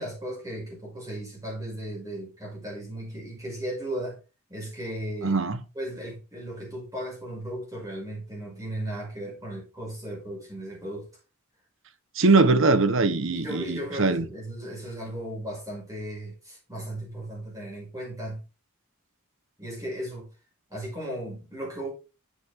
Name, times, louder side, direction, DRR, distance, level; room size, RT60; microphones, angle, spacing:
voice 1, 0.0-4.2 4.5-5.4 5.7-11.1 13.3-18.4 19.6-20.3 20.7-21.9, right 1 dB, 15° right, 5.5 m, -36 dB
voice 2, 5.2-5.6 12.2-14.2, right 3 dB, 60° right, 1.0 m, -21 dB
8.3 x 7.8 x 3.6 m
head